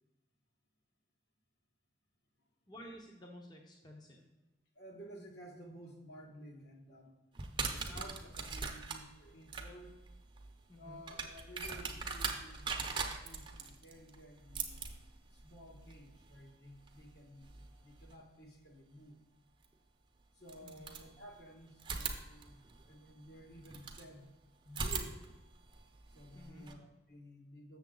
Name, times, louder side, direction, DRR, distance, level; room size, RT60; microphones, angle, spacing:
voice 1, 2.7-4.3 10.7-11.0 20.6-20.9 26.3-26.7, equal, 25° left, 0 dB, 0.8 m, -52 dB
voice 2, 4.7-7.2 7.7-9.9 10.7-17.5 17.8-19.2 20.3-24.3 24.6-25.3 26.1-27.8, equal, 65° left, 0 dB, 1.6 m, -54 dB
sound 1, 7.3-18.1 19.6-19.7 20.4-21.4 21.8-24.1 24.7-26.7, right 4 dB, 25° right, 0.7 m, -42 dB
7.2 x 6.9 x 3.9 m, 1.1 s
head